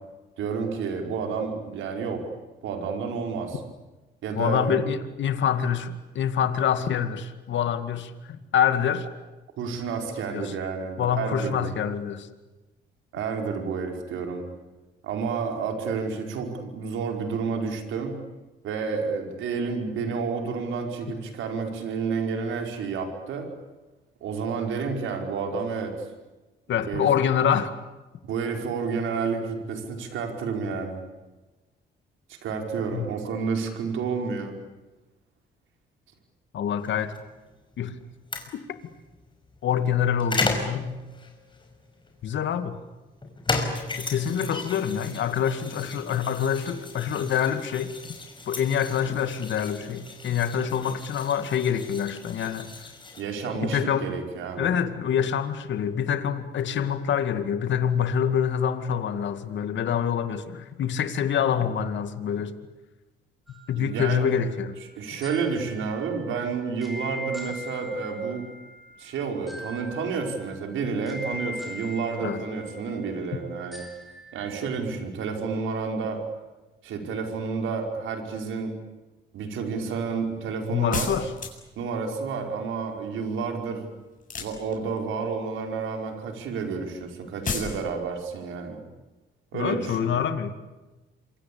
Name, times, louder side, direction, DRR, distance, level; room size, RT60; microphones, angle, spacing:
voice 1, 0.4-2.3 2.6-3.6 4.2-4.7 9.6-11.7 13.1-14.5 15.0-18.2 18.6-23.5 24.2-26.1 26.7-27.1 28.2-31.0 32.3-34.5 53.2-54.7 63.8-64.3 65.0-68.4 69.0-73.8 74.3-76.2 76.8-78.7 79.3-81.1 81.7-83.8 84.4-88.8 89.5-90.1, right 5 dB, 80° right, 4 dB, 5.2 m, -30 dB
voice 2, 4.4-8.1 8.5-9.1 10.3-10.5 11.0-12.3 26.7-27.7 32.9-33.1 36.5-37.1 37.8-37.9 39.6-40.9 42.2-42.8 44.0-48.2 48.5-52.7 53.6-54.1 54.6-62.5 63.7-64.8 72.2-72.4 73.3-73.4 80.7-81.3 89.5-90.5, left 8 dB, 70° left, 9 dB, 2.3 m, -26 dB
sound 1, 36.8-53.2, left 3 dB, 25° left, 5.6 m, -35 dB
sound 2, 63.5-74.7, left 1 dB, ahead, 5.7 m, -42 dB
sound 3, 80.9-81.8 84.2-85.0 87.4-87.8, left 5 dB, 40° left, 7.7 m, -31 dB
27.5 x 24.0 x 8.7 m, 1.1 s
cardioid pair, 90°, 20 cm